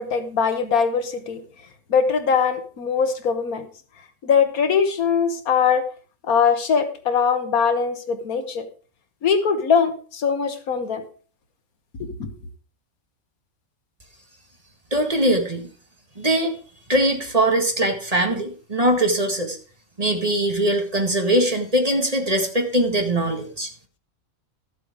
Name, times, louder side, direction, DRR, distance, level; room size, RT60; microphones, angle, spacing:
voice 1, 0.0-1.4 1.9-3.7 4.2-5.9 6.2-8.7 9.2-11.0 12.0-12.3, left 6 dB, 85° left, 9 dB, 1.7 m, -21 dB
voice 2, 14.9-15.7 16.2-16.6 16.9-19.6 20.0-23.7, right 1 dB, 25° right, 3 dB, 1.8 m, -21 dB
13.0 x 7.6 x 4.9 m, 0.41 s
omnidirectional pair, 1.5 m